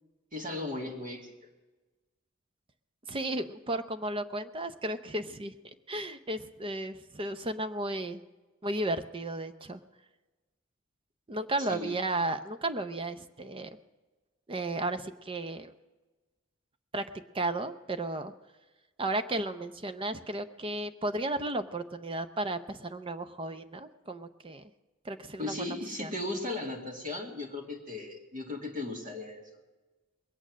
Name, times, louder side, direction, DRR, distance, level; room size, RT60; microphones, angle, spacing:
voice 1, 0.3-1.3 11.6-12.0 25.4-29.5, left 2 dB, 45° right, -1 dB, 2.3 m, -37 dB
voice 2, 3.1-5.5 5.9-8.2 8.6-9.8 11.3-13.8 14.5-15.7 16.9-17.0 17.3-18.3 19.0-24.6 25.0-26.1, right 2 dB, 25° right, 9 dB, 0.6 m, -34 dB
21.5 x 8.9 x 6.2 m, 1.2 s
head